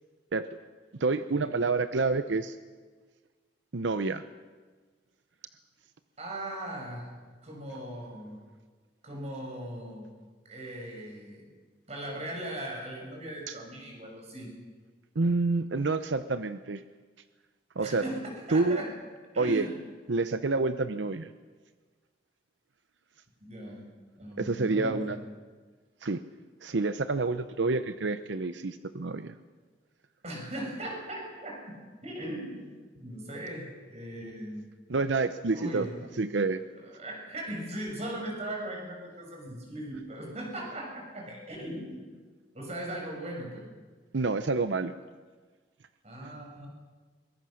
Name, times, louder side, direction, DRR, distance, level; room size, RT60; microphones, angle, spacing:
voice 1, 1.0-2.6 3.7-4.2 13.5-13.6 15.2-16.8 17.8-18.1 18.5-18.8 19.4-19.7 20.1-21.3 24.4-25.2 26.0-26.2 26.6-29.4 34.9-35.9 36.2-36.6 44.1-44.9 46.2-46.3, right 3 dB, 85° right, 11 dB, 0.7 m, -28 dB
voice 2, 6.2-7.1 7.4-8.4 9.0-10.1 10.5-11.5 11.9-14.5 17.8-18.2 18.5-18.9 19.3-19.7 23.4-23.8 24.2-25.2 30.2-34.7 35.5-35.9 36.8-42.1 42.5-43.6 46.0-46.7, right 1 dB, 35° right, 0 dB, 6.4 m, -38 dB
23.0 x 22.0 x 6.4 m, 1.4 s
head